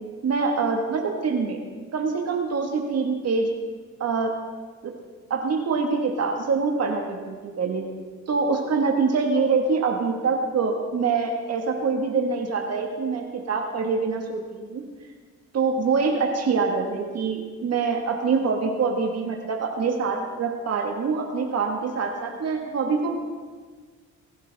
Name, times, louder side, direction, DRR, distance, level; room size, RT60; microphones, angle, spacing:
voice 1, 0.2-1.6 1.9-3.5 4.0-4.3 4.8-4.9 5.3-7.8 8.3-14.8 15.5-23.2, right 4 dB, 55° right, 2 dB, 1.7 m, -25 dB
20.0 x 10.5 x 3.5 m, 1.5 s
cardioid pair, 90°, 30 cm